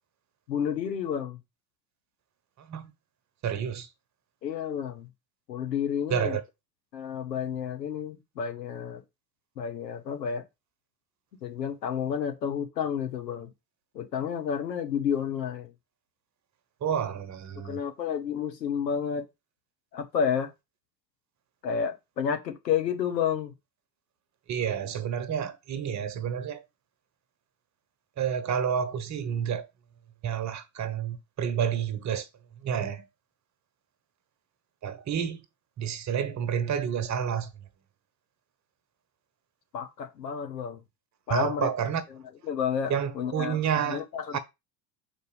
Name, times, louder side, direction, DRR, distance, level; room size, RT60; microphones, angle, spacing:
voice 1, 0.5-1.4 4.4-5.1 5.5-6.4 6.9-9.0 9.6-10.4 11.4-13.5 13.9-15.7 17.6-19.3 19.9-20.5 21.6-23.5 39.7-40.8 41.3-41.7 42.1-44.4, left 7 dB, 80° left, 1.1 m, -30 dB
voice 2, 2.6-2.9 3.4-3.9 6.1-6.4 16.8-17.8 24.5-26.6 28.2-29.6 30.2-32.3 32.6-33.0 34.8-35.4 35.8-37.5 41.3-42.0 42.9-44.0 44.3-44.4, right 8 dB, 35° right, 1.1 m, -29 dB
5.3 x 4.3 x 4.8 m
figure-of-eight pair, 70°, 50 cm